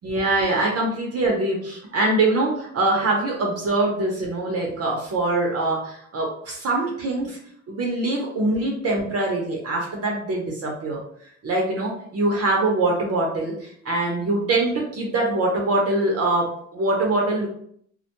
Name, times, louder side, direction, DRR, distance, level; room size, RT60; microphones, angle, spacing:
voice 1, 0.0-7.4 7.7-11.0 11.4-17.5, right 2 dB, 55° right, -2 dB, 0.7 m, -23 dB
2.1 x 2.1 x 2.8 m, 0.65 s
cardioid pair, 90°, 30 cm